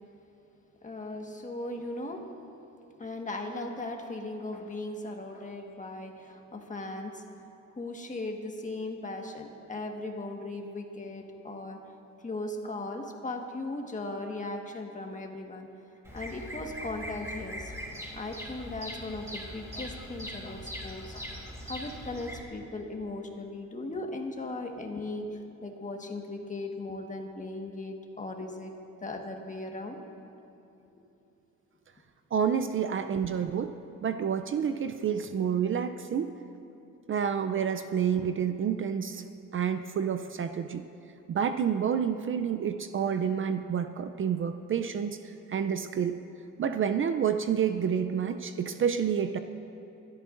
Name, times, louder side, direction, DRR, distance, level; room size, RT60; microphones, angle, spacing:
voice 1, 0.8-2.3 3.0-7.2 7.7-11.8 12.2-15.7 16.1-17.7 18.1-21.3 21.6-28.7 29.0-30.0, left 2 dB, 25° left, 3 dB, 1.5 m, -38 dB
Bird vocalization bird call bird song, 16.0-22.4, equal, 10° right, 2.6 m, -41 dB
voice 2, 32.3-33.7 34.0-36.3 37.1-39.2 39.5-40.9 41.3-46.2 46.6-49.4, right 7 dB, 45° right, 9 dB, 0.5 m, -29 dB
26.5 x 12.5 x 2.6 m, 2.9 s
cardioid pair, 90°, 30 cm